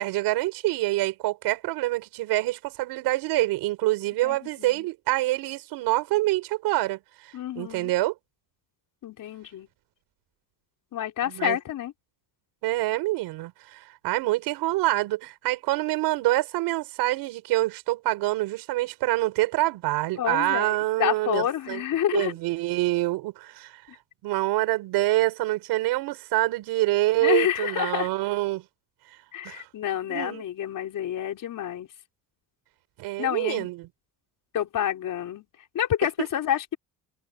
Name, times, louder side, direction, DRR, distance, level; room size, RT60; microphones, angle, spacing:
voice 1, 0.0-8.1 11.3-11.6 12.6-21.8 22.1-23.8 24.2-28.6 29.4-29.7 30.1-30.4 33.0-33.9 36.2-36.3, right 18 dB, 80° right, 4.5 m, -26 dB
voice 2, 4.2-4.8 7.3-7.9 9.0-9.7 10.9-11.9 20.2-22.3 27.2-28.1 29.3-31.9 33.2-33.7 34.5-35.4 35.7-36.8, left 11 dB, 55° left, 4.3 m, -28 dB
open air
cardioid pair, 115°, 39 cm